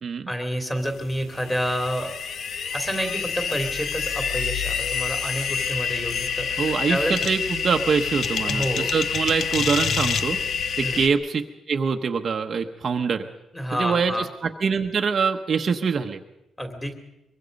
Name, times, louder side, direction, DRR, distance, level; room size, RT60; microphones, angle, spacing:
voice 1, 0.3-2.1 2.7-7.1 8.5-8.9 10.8-11.0 13.5-14.3 16.6-16.9, equal, 10° left, 5 dB, 2.8 m, -29 dB
sound 1, 0.9-11.1, left 6 dB, 55° left, 1.1 m, -27 dB
voice 2, 6.6-10.4 10.8-11.4 11.7-13.2 13.8-16.2, right 5 dB, 40° right, 4 dB, 1.0 m, -24 dB
23.5 x 23.0 x 5.3 m, 0.91 s
cardioid pair, 155°, 0 cm